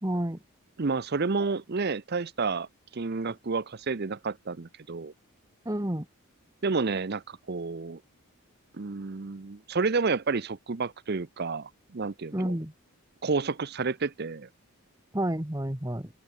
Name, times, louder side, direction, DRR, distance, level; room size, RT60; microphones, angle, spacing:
voice 1, 0.0-0.4 5.6-6.0 12.3-12.7 15.1-16.1, right 1 dB, 15° right, 1.3 m, -29 dB
voice 2, 0.8-2.7 2.9-5.1 6.6-8.0 8.7-12.6 13.2-14.5, right 4 dB, 45° right, 0.6 m, -30 dB
open air
head